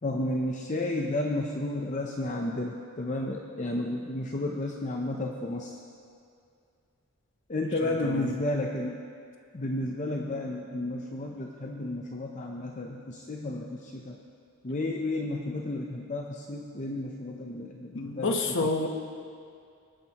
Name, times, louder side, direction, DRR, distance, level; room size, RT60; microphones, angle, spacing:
voice 1, 0.0-5.8 7.5-9.0 9.5-14.2 14.6-18.4 18.6-18.7, left 1 dB, 35° left, 1 dB, 0.6 m, -32 dB
voice 2, 7.8-8.3 17.9-18.9, left 3 dB, 60° left, 4 dB, 1.0 m, -29 dB
22.0 x 9.0 x 3.0 m, 2.4 s
head